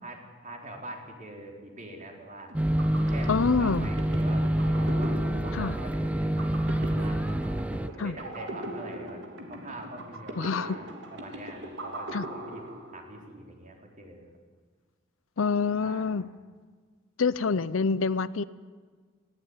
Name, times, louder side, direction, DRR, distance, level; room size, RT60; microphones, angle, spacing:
voice 1, 0.0-2.5 3.1-3.3 3.6-7.2 7.8-9.2 9.5-12.6 12.9-14.3 15.7-16.2, right 1 dB, 40° right, 1 dB, 4.2 m, -44 dB
sound 1, 2.5-7.9, right 1 dB, 5° right, 0.6 m, -27 dB
sound 2, 2.5-13.3, right 1 dB, 60° right, 3.4 m, -41 dB
voice 2, 3.3-3.9 5.5-5.7 8.0-8.2 10.4-10.8 12.1-12.3 15.4-16.3 17.2-18.4, left 4 dB, 70° left, 17 dB, 0.6 m, -26 dB
19.5 x 17.0 x 9.6 m, 1.5 s
head